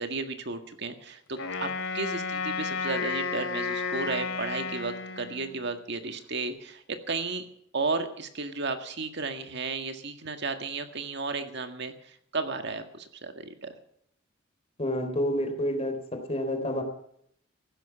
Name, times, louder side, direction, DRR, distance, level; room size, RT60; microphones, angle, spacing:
voice 1, 0.0-1.7 1.9-7.5 7.7-13.7, right 3 dB, 60° right, 7 dB, 1.8 m, -33 dB
Wind instrument woodwind instrument, 1.4-5.8, left 4 dB, 80° left, 2.9 m, -32 dB
voice 2, 14.8-16.8, equal, 30° left, 6 dB, 3.6 m, -29 dB
15.5 x 12.0 x 7.3 m, 0.69 s
head